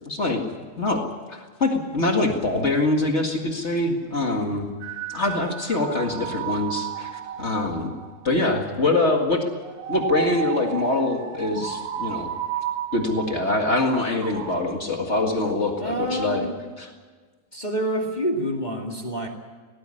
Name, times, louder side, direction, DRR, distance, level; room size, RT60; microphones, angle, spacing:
voice 1, 0.0-0.4 0.8-1.0 1.3-4.7 5.1-7.9 8.2-9.4 9.9-12.3 12.9-16.4 16.8-16.9, left 2 dB, 60° left, 2 dB, 0.7 m, -24 dB
sound 1, 4.8-8.6 9.6-14.6, right 9 dB, 85° right, 4.2 m, -33 dB
voice 2, 15.8-16.5 17.5-19.3, equal, 20° left, 1 dB, 1.2 m, -27 dB
18.5 x 18.0 x 9.8 m, 1.5 s
omnidirectional pair, 4.6 m